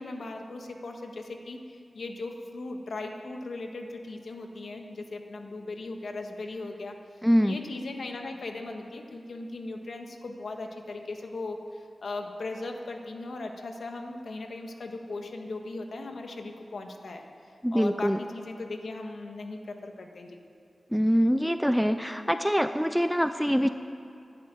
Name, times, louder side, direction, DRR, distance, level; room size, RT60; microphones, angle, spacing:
voice 1, 0.0-7.0 7.4-17.2 17.7-20.4, left 2 dB, 70° left, 4 dB, 1.5 m, -38 dB
voice 2, 7.2-7.6 17.6-18.2 20.9-23.7, equal, ahead, 9 dB, 0.4 m, -24 dB
13.0 x 11.0 x 9.2 m, 2.6 s
wide cardioid pair, 105°, 0 cm